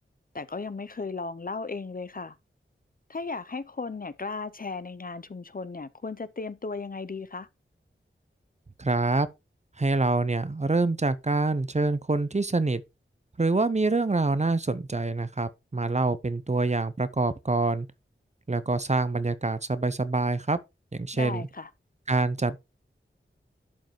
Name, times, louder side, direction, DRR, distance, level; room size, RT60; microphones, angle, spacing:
voice 1, 0.3-2.4 3.1-7.5 21.1-21.7, left 4 dB, 45° left, 0.6 m, -35 dB
voice 2, 8.8-9.3 9.8-12.8 13.4-17.9 18.5-20.6 20.9-21.5 22.1-22.6, right 3 dB, 35° right, 0.7 m, -26 dB
12.0 x 5.2 x 3.1 m
wide cardioid pair, 50°, 21 cm